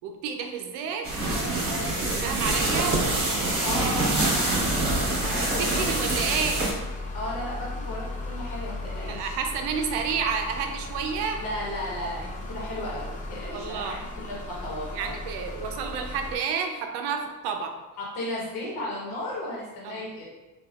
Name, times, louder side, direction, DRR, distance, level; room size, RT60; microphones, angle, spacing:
voice 1, 0.0-1.1 2.2-2.9 5.3-6.6 9.1-11.4 13.5-13.9 14.9-17.7 19.8-20.0, right 6 dB, 85° right, 4 dB, 0.5 m, -30 dB
sound 1, 1.0-6.7, right 2 dB, 30° right, 1.1 m, -25 dB
voice 2, 3.6-5.9 7.1-9.3 11.3-15.1 18.0-20.3, left 1 dB, 80° left, -5 dB, 1.0 m, -35 dB
sound 2, 4.6-16.4, left 2 dB, 20° left, 0.5 m, -36 dB
3.4 x 2.3 x 2.3 m, 1.1 s
cardioid pair, 90°, 39 cm